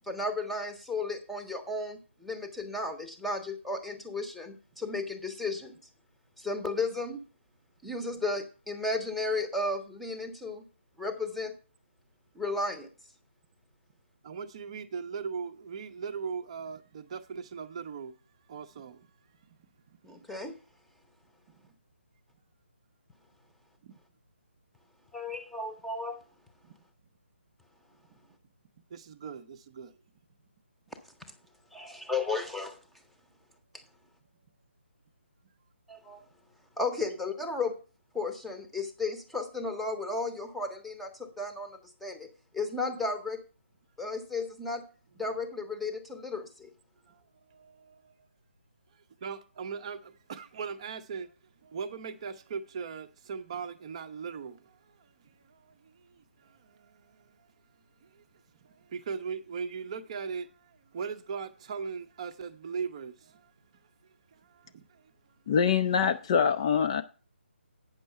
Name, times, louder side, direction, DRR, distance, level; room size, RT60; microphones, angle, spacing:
voice 1, 0.1-5.7 6.4-7.2 7.8-10.6 11.0-11.5 12.3-12.9 20.0-20.5 25.1-26.2 31.7-32.8 35.9-36.2 36.8-37.8 38.1-42.3 42.5-43.4 44.0-44.8 45.2-46.7, left 3 dB, ahead, 0.9 m, -34 dB
voice 2, 14.2-18.1 18.5-19.1 23.8-23.9 26.6-26.7 28.9-29.9 47.1-47.2 47.5-48.1 49.2-51.3 51.6-57.3 58.0-58.2 58.6-63.5 64.3-65.0, right 6 dB, 30° right, 0.7 m, -39 dB
voice 3, 65.5-67.0, left 7 dB, 30° left, 0.5 m, -24 dB
8.9 x 6.2 x 6.7 m
figure-of-eight pair, 145°, 7 cm